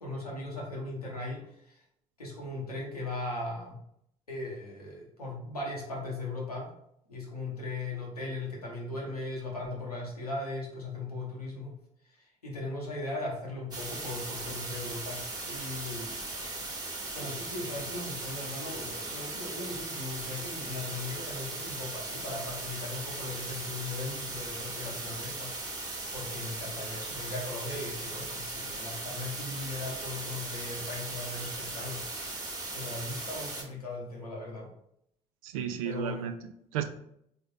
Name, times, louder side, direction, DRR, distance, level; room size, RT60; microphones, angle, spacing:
voice 1, 0.0-1.8 2.2-3.8 4.3-6.7 7.1-11.7 12.1-16.2 17.1-25.5 25.8-32.3 32.7-34.7 35.8-36.3, left 2 dB, 85° left, -2 dB, 1.0 m, -38 dB
sound 1, 13.7-33.6, right 2 dB, 20° right, 1.2 m, -38 dB
voice 2, 35.4-36.8, right 9 dB, 65° right, 8 dB, 0.5 m, -34 dB
4.0 x 3.7 x 3.4 m, 0.73 s
figure-of-eight pair, 50°, 19 cm